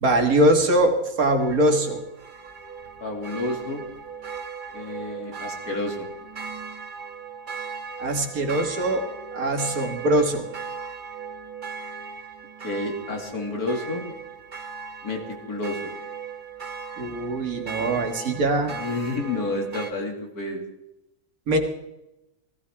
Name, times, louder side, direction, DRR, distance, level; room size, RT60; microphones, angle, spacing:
voice 1, 0.0-2.0 8.0-9.1 9.3-10.5 17.0-18.8 21.5-21.6, right 1 dB, 75° right, 4 dB, 2.2 m, -22 dB
sound 1, 1.4-19.9, right 5 dB, 35° right, 1.2 m, -38 dB
voice 2, 3.0-3.8 4.7-6.1 12.6-14.0 15.0-15.2 15.5-15.9 18.7-20.6, left 2 dB, 90° left, 1 dB, 2.9 m, -30 dB
16.5 x 16.0 x 3.5 m, 0.91 s
omnidirectional pair, 1.6 m